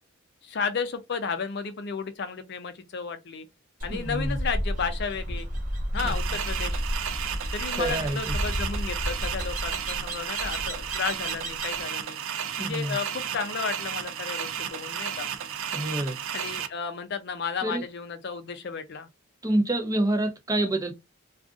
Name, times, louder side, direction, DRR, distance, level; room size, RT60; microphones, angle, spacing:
voice 1, 0.4-3.5 3.8-5.5 5.9-6.8 7.5-12.2 12.6-15.3 16.3-19.1, left 5 dB, 55° left, 0.5 m, -33 dB
sound 1, 3.8-11.8, equal, 40° right, 1.0 m, -32 dB
voice 2, 3.9-4.4 6.0-6.1 7.8-8.3 12.6-13.0 15.7-16.2 17.6-17.8 19.4-20.9, right 1 dB, 15° right, 0.7 m, -27 dB
sound 2, 6.0-16.7, right 8 dB, 70° right, 0.5 m, -33 dB
2.4 x 2.4 x 3.6 m
head